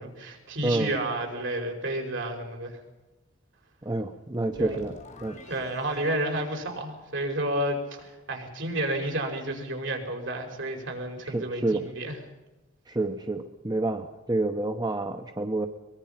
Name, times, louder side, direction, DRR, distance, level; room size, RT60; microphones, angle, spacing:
voice 1, 0.0-2.8 4.6-4.8 5.5-12.2, right 1 dB, 65° right, 2 dB, 5.4 m, -31 dB
voice 2, 3.8-4.9 5.2-5.4 11.2-11.9 12.9-15.7, right 2 dB, 20° right, 5 dB, 1.0 m, -28 dB
sound 1, 4.3-7.6, left 1 dB, 40° left, 4.7 m, -48 dB
23.5 x 22.0 x 5.9 m, 1.1 s
head